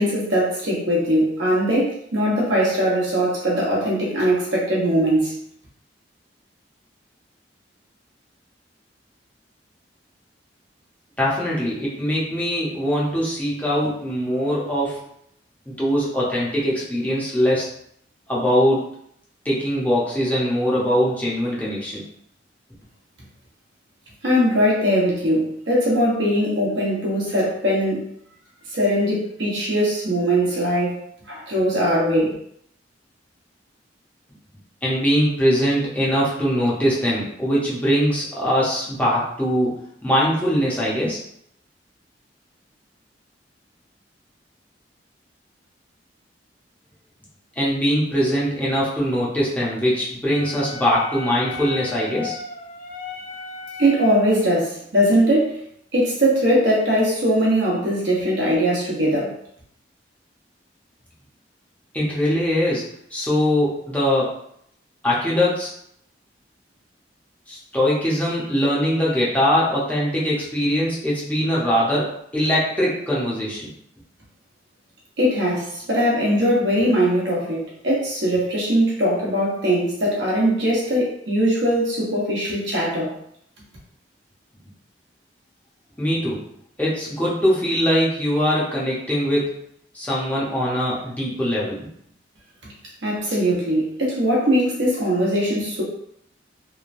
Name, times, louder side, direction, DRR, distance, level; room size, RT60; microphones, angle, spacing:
voice 1, 0.0-5.4 24.2-28.0 28.7-31.0 31.3-32.3 53.8-55.6 55.9-59.3 75.2-83.1 93.0-95.8, equal, 75° right, -5 dB, 0.9 m, -20 dB
voice 2, 11.2-15.0 15.7-17.7 18.3-19.0 19.4-22.0 34.8-41.2 47.6-52.4 61.9-62.9 63.1-64.4 65.0-65.7 67.5-73.7 86.0-86.4 86.8-89.6 89.9-91.8, equal, 10° left, -7 dB, 0.7 m, -22 dB
Wind instrument woodwind instrument, 50.3-54.5, left 3 dB, 45° left, 0.4 m, -35 dB
3.0 x 2.2 x 2.5 m, 0.70 s
head